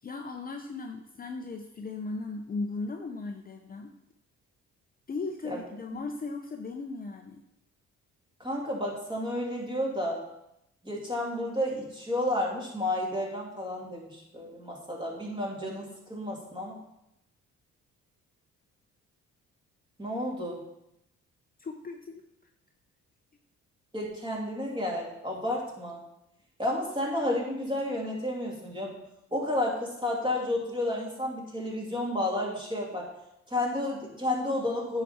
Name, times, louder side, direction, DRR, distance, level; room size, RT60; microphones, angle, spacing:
voice 1, 0.0-3.9 5.1-7.4 21.6-22.2, left 3 dB, 30° left, 4 dB, 0.7 m, -37 dB
voice 2, 8.4-10.2 10.8-16.8 20.0-20.6 23.9-26.0 26.6-28.9 29.3-33.1 33.5-35.0, left 1 dB, 15° right, -2 dB, 2.6 m, -31 dB
9.1 x 5.8 x 4.3 m, 0.85 s
cardioid pair, 90°, 30 cm